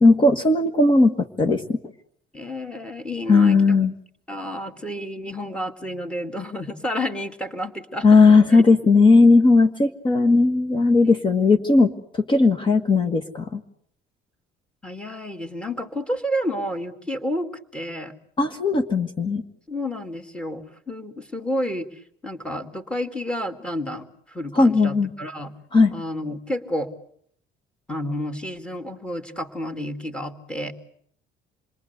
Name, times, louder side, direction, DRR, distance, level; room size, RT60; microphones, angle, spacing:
voice 1, 0.0-1.8 3.3-3.9 8.0-13.6 18.4-19.4 24.5-25.1 25.7-25.9, left 3 dB, 25° left, 6 dB, 1.6 m, -17 dB
voice 2, 2.3-3.8 4.3-8.2 8.5-8.6 11.0-11.2 14.8-18.1 19.7-25.5 25.9-26.9 27.9-30.7, left 1 dB, 5° left, 7 dB, 2.3 m, -30 dB
28.0 x 22.5 x 8.1 m, 0.66 s
cardioid pair, 155°, 18 cm